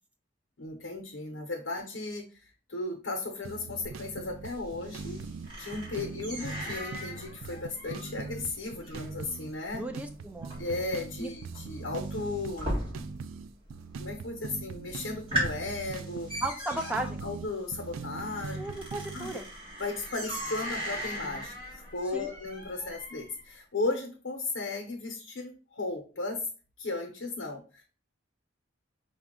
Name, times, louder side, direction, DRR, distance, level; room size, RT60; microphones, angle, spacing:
voice 1, 0.6-5.2 5.6-9.8 10.6-12.8 14.0-16.4 17.2-18.6 19.1-19.4 19.8-26.4 26.8-27.8, left 3 dB, 75° left, 1 dB, 0.8 m, -35 dB
sound 1, 3.4-19.4, right 4 dB, 80° right, 0.3 m, -41 dB
sound 2, 3.8-13.4 13.7-14.3 14.7-14.8 15.1-23.4, equal, 25° right, 1.8 m, -39 dB
voice 2, 9.7-10.5 11.2-11.3 16.4-17.2 18.6-19.5 22.1-22.3, right 1 dB, 5° right, 5 dB, 0.3 m, -35 dB
5.1 x 2.3 x 3.6 m, 0.37 s
head